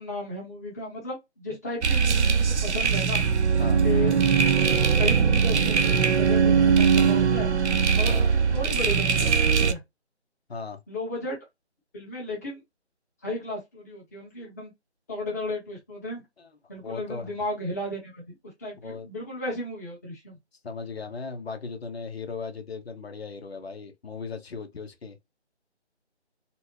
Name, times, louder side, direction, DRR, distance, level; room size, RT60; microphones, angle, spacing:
voice 1, 0.0-3.2 3.8-4.2 5.0-7.5 7.9-9.8 10.9-11.4 11.9-12.6 13.2-14.7 15.1-16.2 16.7-18.3 18.6-20.3, left 1 dB, 15° left, 1.1 m, -34 dB
sound 1, 1.8-9.7, right 6 dB, 75° right, 0.6 m, -21 dB
voice 2, 10.5-10.8 16.4-16.5 16.8-17.3 18.8-19.1 20.6-25.2, left 4 dB, 60° left, 0.9 m, -37 dB
4.2 x 2.2 x 2.8 m
figure-of-eight pair, 165°, 35 cm